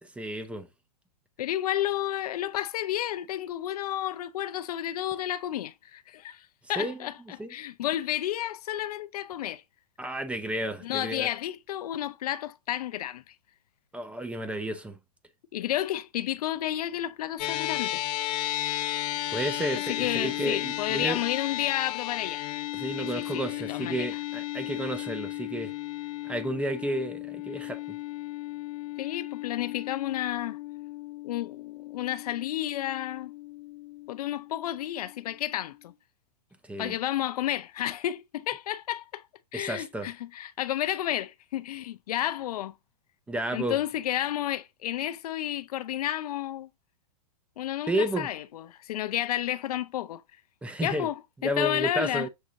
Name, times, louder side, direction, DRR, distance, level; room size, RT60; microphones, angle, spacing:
voice 1, 0.0-0.7 6.8-7.0 7.4-7.5 10.0-11.3 13.9-14.9 19.3-21.2 22.7-25.7 26.3-27.8 36.7-36.9 39.5-40.1 43.3-43.8 47.9-48.3 50.6-51.1 51.4-52.3, right 1 dB, 5° right, 0.4 m, -31 dB
voice 2, 1.4-9.6 10.8-13.3 15.5-18.0 19.7-22.5 23.0-24.2 29.0-30.6 31.2-33.3 34.1-35.9 36.8-39.2 39.5-42.7 43.5-46.7 47.6-50.2 50.8-52.3, left 12 dB, 70° left, 0.4 m, -31 dB
sound 1, 17.4-35.9, left 15 dB, 45° left, 0.9 m, -35 dB
6.2 x 2.8 x 2.5 m
hypercardioid pair, 120°, 20 cm